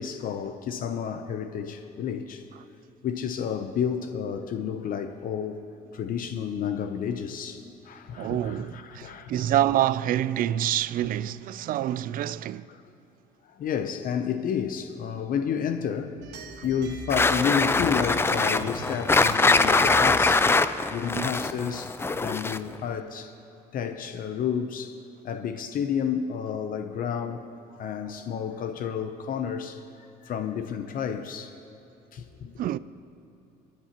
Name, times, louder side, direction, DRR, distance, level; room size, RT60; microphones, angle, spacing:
voice 1, 0.0-2.4 3.0-5.6 5.9-9.5 12.7-12.8 13.4-16.2 16.6-20.5 20.9-23.3 23.7-24.9 25.2-27.5 27.8-29.8 30.2-31.5 32.1-32.6, left 7 dB, 55° left, 0.7 m, -31 dB
voice 2, 8.2-12.7 21.1-21.3 32.6-32.8, right 12 dB, 55° right, 0.4 m, -27 dB
sound 1, 16.2-22.0, right 3 dB, 75° right, 1.3 m, -41 dB
sound 2, 17.1-22.8, left 3 dB, 15° left, 0.4 m, -22 dB
28.0 x 9.9 x 2.9 m
cardioid pair, 110°, 17 cm